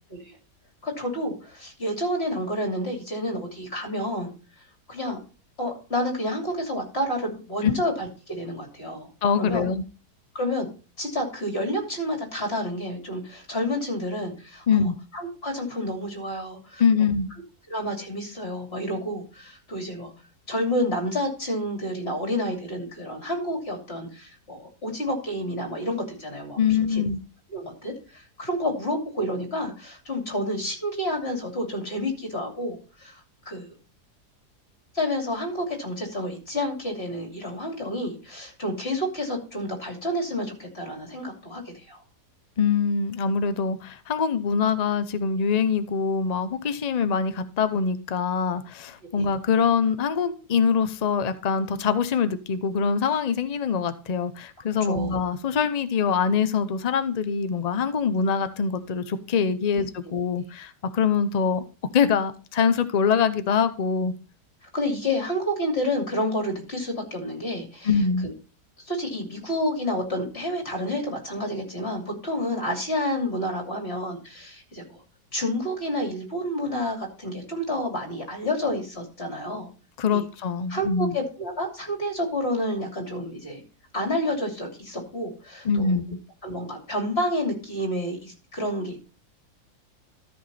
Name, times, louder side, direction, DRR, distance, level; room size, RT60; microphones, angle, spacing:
voice 1, 0.8-4.3 4.9-5.2 5.6-9.1 9.4-9.7 10.3-10.7 11.0-16.8 17.7-20.1 20.5-27.0 27.5-33.7 34.9-42.0 49.2-49.3 54.9-55.2 64.7-67.9 68.2-68.3 68.8-75.0 75.3-79.7 80.1-80.3 80.7-83.6 83.9-86.0 86.4-89.0, left 1 dB, 35° left, 3.1 m, -29 dB
voice 2, 9.2-9.8 14.7-14.9 16.8-17.3 26.6-27.2 42.6-61.6 61.9-64.1 67.8-68.3 80.0-81.2 85.6-86.2, left 6 dB, 90° left, 0.3 m, -24 dB
13.5 x 5.8 x 4.2 m
omnidirectional pair, 1.8 m